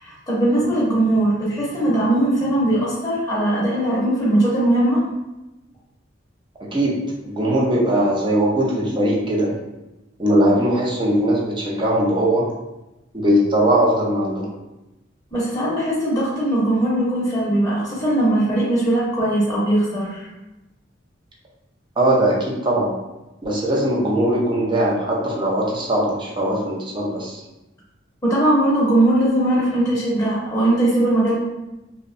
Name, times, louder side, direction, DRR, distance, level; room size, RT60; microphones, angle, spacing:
voice 1, 0.0-5.0 15.3-20.3 28.2-31.4, right 1 dB, 20° left, -8 dB, 0.7 m, -19 dB
voice 2, 6.6-9.5 10.2-12.5 13.1-14.5 22.0-22.9 23.4-27.4, right 1 dB, 25° right, -3 dB, 0.5 m, -20 dB
2.7 x 2.1 x 2.5 m, 0.99 s
head